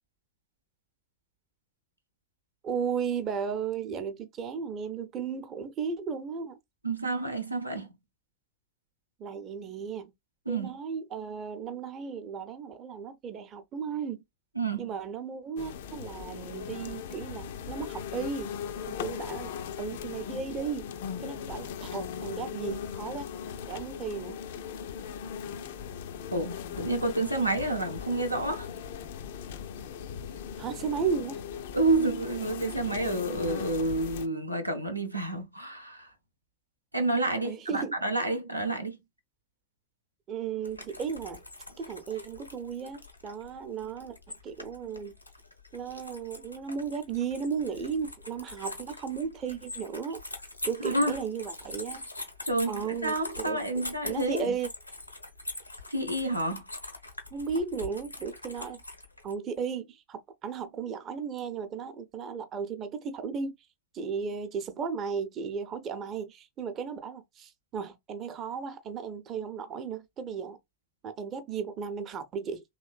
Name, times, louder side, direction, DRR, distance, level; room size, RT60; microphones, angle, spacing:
voice 1, 2.6-6.6 9.2-10.1 10.5-14.2 14.8-18.5 18.9-20.9 21.2-23.3 23.7-24.4 30.6-31.4 37.4-38.0 40.3-41.4 41.8-44.2 44.4-45.1 45.7-50.2 50.6-52.1 52.7-54.7 57.3-58.8 59.2-63.5 63.9-70.6 71.0-72.6, right 6 dB, 30° right, 0.6 m, -35 dB
voice 2, 6.8-7.9 10.5-10.7 14.6-14.9 26.3-28.7 31.7-36.1 36.9-39.0 50.8-51.2 52.4-54.5 55.9-56.7, right 2 dB, 85° right, 0.6 m, -29 dB
sound 1, 15.6-34.3, left 8 dB, 55° left, 0.4 m, -39 dB
sound 2, 40.6-59.3, left 2 dB, 85° left, 0.8 m, -43 dB
3.1 x 3.0 x 2.3 m
figure-of-eight pair, 90°, 0 cm